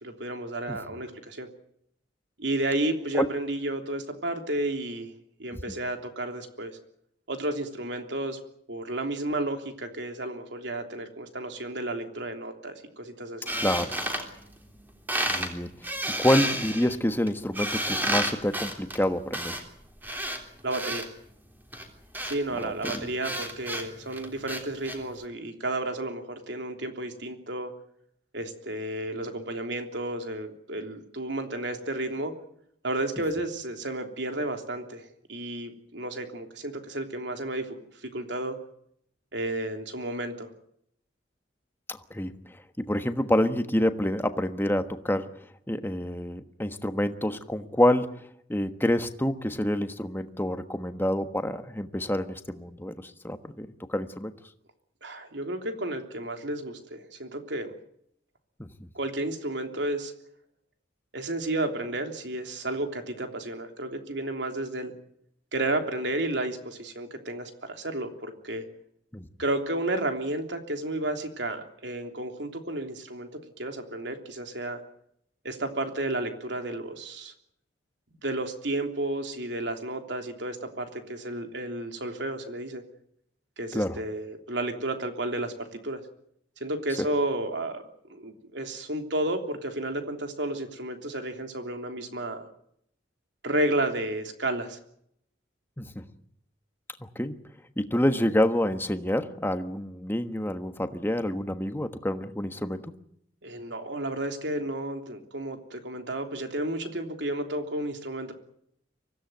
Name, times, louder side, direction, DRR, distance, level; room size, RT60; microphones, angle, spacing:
voice 1, 0.0-1.5 2.4-5.1 5.4-6.7 7.3-8.4 8.7-13.5 20.6-21.1 22.2-27.7 28.3-32.3 32.8-38.5 39.3-40.5 55.0-57.7 58.9-60.1 61.1-64.9 65.5-68.6 69.4-73.3 73.6-74.8 75.4-77.3 78.2-82.8 83.6-86.0 86.6-87.8 88.1-92.4 93.4-94.8 103.4-108.3, right 1 dB, 70° right, 5 dB, 3.3 m, -32 dB
sound 1, 13.5-14.8 15.1-15.5 15.8-21.1 21.7-25.0, right 1 dB, 10° right, 3.4 m, -31 dB
voice 2, 13.6-13.9 15.3-15.7 16.2-19.6 22.8-23.1 42.1-42.3 42.8-45.3 45.7-54.3 58.6-58.7 69.1-69.3 83.7-84.0 95.8-96.0 97.0-97.4 97.8-102.9, left 1 dB, 10° left, 8 dB, 1.3 m, -27 dB
24.5 x 16.5 x 9.3 m, 0.71 s
head